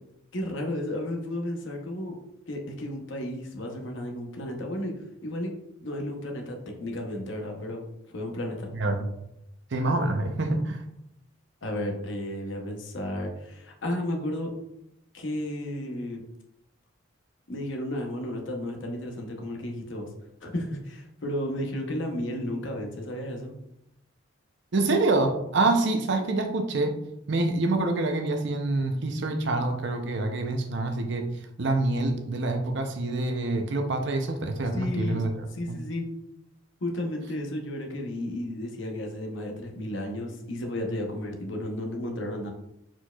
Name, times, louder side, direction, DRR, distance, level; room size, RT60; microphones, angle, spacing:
voice 1, 0.3-2.2 2.5-5.5 5.8-7.8 8.1-8.7 11.6-14.5 15.1-16.2 17.5-20.1 20.4-23.6 34.7-35.2 35.5-36.1 36.8-42.5, left 1 dB, 65° left, 2 dB, 0.8 m, -33 dB
voice 2, 9.7-10.8 24.7-27.0 27.3-31.3 31.6-35.8, right 2 dB, 60° right, 5 dB, 0.6 m, -26 dB
4.5 x 4.3 x 2.3 m, 0.81 s
head